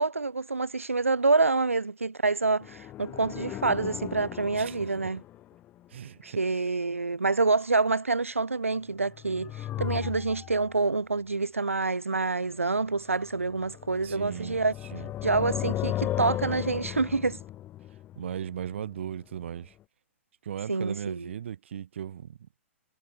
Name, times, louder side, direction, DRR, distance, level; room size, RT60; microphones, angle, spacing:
voice 1, 0.0-5.2 6.2-14.7 15.2-17.4 20.7-21.3, right 3 dB, 85° right, 0.9 m, -27 dB
sound 1, 2.6-5.7 9.0-10.8 13.1-19.2 19.4-19.5, left 13 dB, 25° left, 1.6 m, -36 dB
voice 2, 5.9-6.4 14.0-14.6 14.9-15.1 18.2-19.7 20.4-22.4, right 9 dB, 60° right, 1.3 m, -37 dB
figure-of-eight pair, 115°, 7 cm